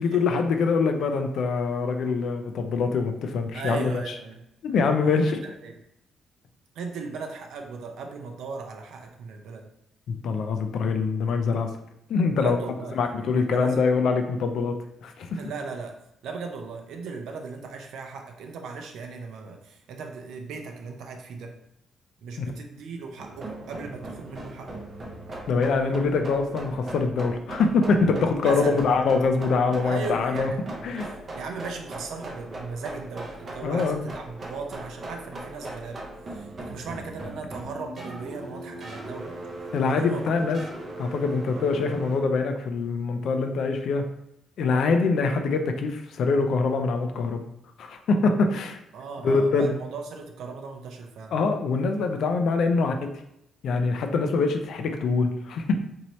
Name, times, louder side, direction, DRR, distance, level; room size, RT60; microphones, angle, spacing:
voice 1, 0.0-3.9 4.6-5.4 10.1-11.7 12.1-12.6 13.0-14.7 15.0-15.4 22.4-22.5 25.5-30.5 30.8-31.1 33.6-34.0 39.7-40.6 41.0-44.0 44.6-47.4 47.8-48.8 49.2-49.8 51.3-53.0 53.6-55.8, left 4 dB, 55° left, 6 dB, 0.4 m, -24 dB
voice 2, 3.5-4.4 4.7-5.8 6.7-9.7 12.3-13.9 15.4-16.0 16.2-21.6 22.2-24.9 28.4-29.0 29.8-36.0 36.3-39.4 39.8-40.4 41.5-41.7 48.4-48.6 48.9-51.4 52.7-53.1, right 4 dB, 70° right, 3 dB, 0.6 m, -37 dB
sound 1, 23.2-42.2, right 1 dB, 25° right, 0.6 m, -39 dB
4.3 x 2.7 x 3.0 m, 0.81 s
cardioid pair, 180°, 0 cm